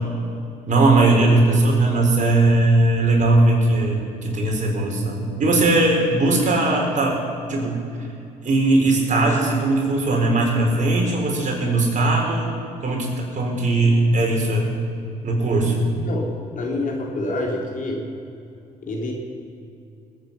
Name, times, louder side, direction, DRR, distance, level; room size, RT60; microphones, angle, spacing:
voice 1, 0.7-7.2 7.5-7.8 8.4-12.5 12.8-14.7 15.2-15.9, right 2 dB, 45° right, 0 dB, 4.5 m, -19 dB
voice 2, 16.0-18.0 18.8-19.1, left 2 dB, 50° left, 0 dB, 3.5 m, -27 dB
20.0 x 9.1 x 6.1 m, 2.6 s
hypercardioid pair, 60°, 17 cm